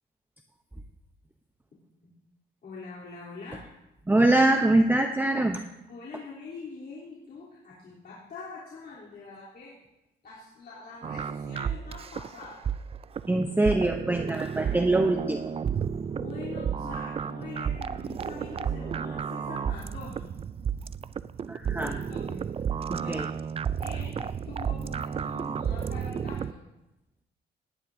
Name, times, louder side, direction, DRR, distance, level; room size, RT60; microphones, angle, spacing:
voice 1, 2.6-3.6 5.9-9.7 10.2-12.6 16.1-20.2 21.6-22.4 22.9-23.3 23.8-26.6, left 4 dB, 50° left, -8 dB, 3.3 m, -43 dB
voice 2, 4.1-5.6 13.3-15.5 21.5-22.0 22.9-23.3, right 2 dB, 10° right, 4 dB, 0.7 m, -24 dB
sound 1, 11.0-26.5, right 7 dB, 30° right, 0.3 m, -32 dB
18.0 x 10.5 x 2.7 m, 0.91 s
cardioid pair, 90°, 20 cm